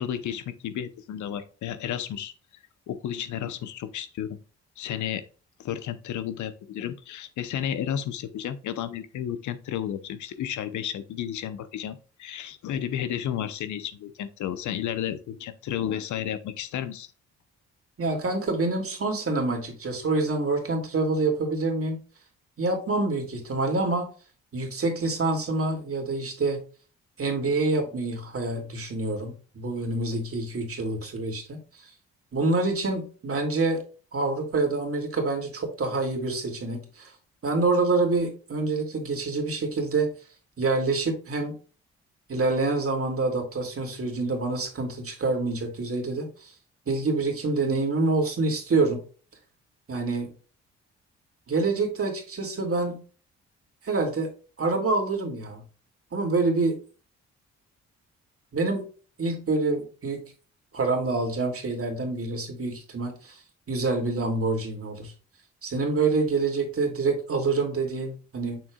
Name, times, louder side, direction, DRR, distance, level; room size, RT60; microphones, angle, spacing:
voice 1, 0.0-2.3 2.9-4.4 4.8-5.2 5.6-17.1, left 10 dB, 70° left, 12 dB, 0.8 m, -32 dB
voice 2, 18.0-22.0 22.6-24.1 24.5-26.6 27.2-31.9 32.3-33.8 34.1-37.1 37.4-40.1 40.6-41.6 42.3-46.5 46.9-49.0 49.9-50.3 51.5-53.0 53.8-54.3 54.6-55.6 56.1-56.8 58.5-58.8 59.2-60.2 60.7-63.4 63.7-65.1 65.6-68.6, right 3 dB, 45° right, 2 dB, 2.5 m, -26 dB
7.0 x 6.1 x 2.3 m, 0.37 s
hypercardioid pair, 50°, 31 cm